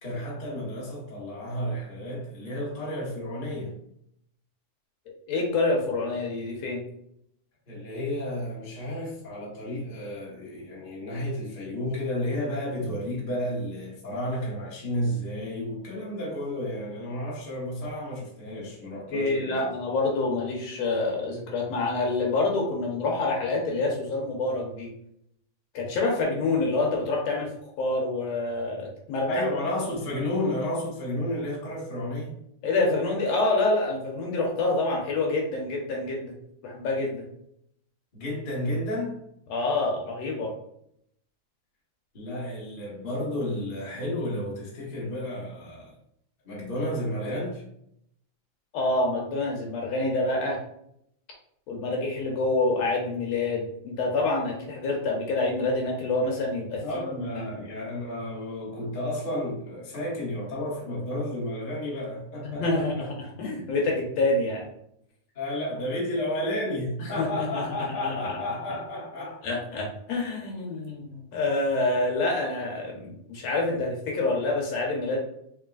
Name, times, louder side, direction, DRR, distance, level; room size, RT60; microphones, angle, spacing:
voice 1, 0.0-3.8 7.7-19.7 29.3-32.3 38.1-39.2 42.1-46.0 46.4-47.6 56.8-63.1 65.3-69.4, left 1 dB, 50° left, -6 dB, 0.6 m, -32 dB
voice 2, 5.3-6.8 19.1-24.9 25.7-27.5 27.8-29.4 32.6-36.3 36.6-37.2 39.5-40.5 48.7-50.6 51.7-57.6 62.4-62.9 63.4-64.7 67.0-67.6 68.0-68.1 69.4-75.2, left 2 dB, 70° left, 0 dB, 1.9 m, -27 dB
4.7 x 3.6 x 2.4 m, 0.73 s
omnidirectional pair, 3.4 m